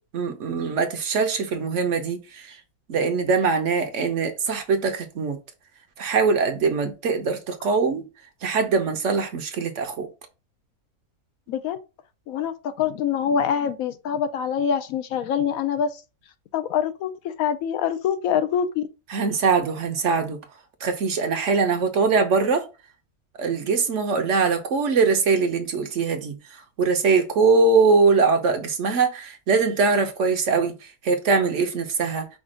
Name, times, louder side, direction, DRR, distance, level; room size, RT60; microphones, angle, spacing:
voice 1, 0.1-2.6 2.9-5.4 6.0-8.1 8.4-10.1 19.1-20.4 20.8-22.7 23.4-26.4 26.8-30.7 31.0-32.3, right 4 dB, 60° right, 1.0 m, -22 dB
voice 2, 11.5-11.8 12.3-16.0 16.5-18.9, left 8 dB, 75° left, 1.0 m, -25 dB
5.1 x 2.3 x 3.7 m
omnidirectional pair, 1.5 m